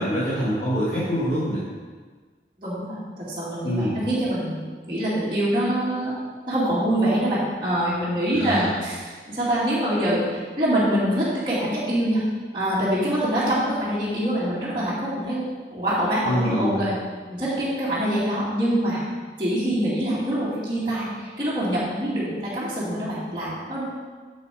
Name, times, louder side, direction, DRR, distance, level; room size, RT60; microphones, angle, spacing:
voice 1, 0.0-1.6 3.6-4.0 8.3-8.6 16.2-16.8, equal, 40° left, -10 dB, 1.9 m, -25 dB
voice 2, 2.6-6.1 6.5-12.2 12.5-15.4 15.7-17.0 17.3-19.0 19.4-23.8, right 1 dB, 25° right, -10 dB, 2.3 m, -25 dB
7.3 x 6.8 x 4.8 m, 1.5 s
head